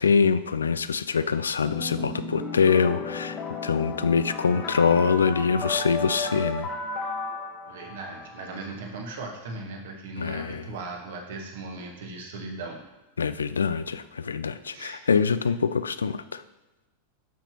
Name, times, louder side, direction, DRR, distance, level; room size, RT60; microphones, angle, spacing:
voice 1, 0.0-6.7 10.2-10.6 13.2-16.4, left 5 dB, 70° left, 14 dB, 0.3 m, -24 dB
sound 1, 1.6-8.6, left 3 dB, 30° left, 1.3 m, -34 dB
voice 2, 7.7-12.8 14.6-15.1, right 3 dB, 60° right, 1 dB, 1.6 m, -38 dB
12.0 x 5.8 x 3.0 m, 1.0 s
figure-of-eight pair, 90°, 0 cm